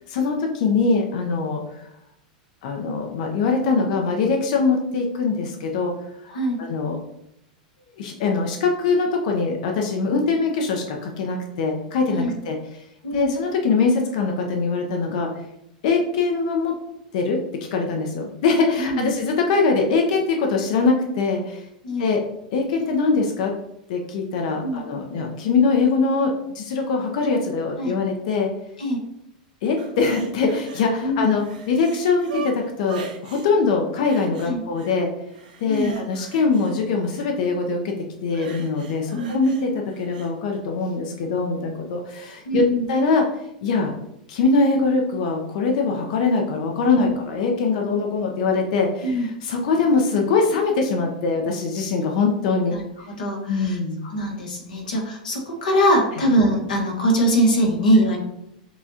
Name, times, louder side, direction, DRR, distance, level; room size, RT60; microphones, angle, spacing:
voice 1, 0.1-1.6 2.6-5.9 6.2-7.0 8.0-12.6 13.1-15.3 15.8-16.7 17.1-17.4 17.7-21.6 22.0-22.2 22.5-23.5 23.9-28.5 29.6-35.1 35.6-37.9 38.2-39.7 40.0-43.2 43.6-43.9 44.3-52.8 53.5-54.0, left 4 dB, 65° left, 2 dB, 0.7 m, -22 dB
voice 2, 18.8-19.1 21.8-22.1 24.6-24.8 27.8-27.9 28.8-29.0 31.0-31.3 34.4-34.6 35.7-35.9 39.1-39.3 42.5-42.8 46.9-47.1 49.0-49.3 52.7-52.8 53.1-53.8 54.0-58.2, equal, 80° left, 0 dB, 1.3 m, -22 dB
sound 1, 29.8-30.9 31.2-33.5 34.1-34.9 35.3-37.3 38.3-40.3 40.8-40.9, right 3 dB, 75° right, 0.7 m, -40 dB
6.9 x 2.4 x 2.8 m, 0.81 s
hypercardioid pair, 100°, 4 cm